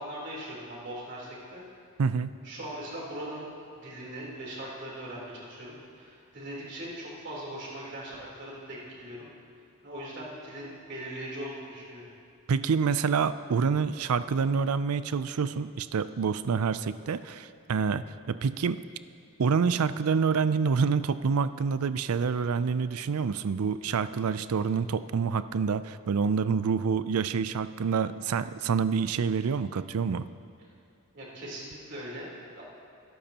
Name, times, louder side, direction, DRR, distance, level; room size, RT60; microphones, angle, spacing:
voice 1, 0.0-1.6 2.4-3.5 3.7-9.3 9.8-12.1 31.1-32.3 32.5-32.6, right 1 dB, 55° right, -5 dB, 3.6 m, -40 dB
voice 2, 2.0-2.3 12.5-18.8 19.4-30.2, right 5 dB, 90° right, 13 dB, 0.4 m, -27 dB
21.5 x 12.0 x 2.9 m, 2.5 s
head